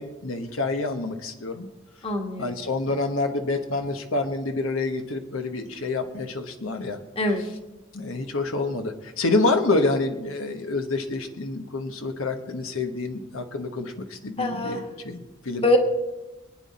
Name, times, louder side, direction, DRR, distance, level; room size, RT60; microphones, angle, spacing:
voice 1, 0.0-1.7 2.4-7.0 7.9-15.6, left 3 dB, 80° left, 5 dB, 1.2 m, -27 dB
voice 2, 2.0-2.5 7.2-7.4 14.4-14.8 15.6-15.8, left 1 dB, 30° left, 3 dB, 1.7 m, -23 dB
24.5 x 9.5 x 4.2 m, 1.1 s
head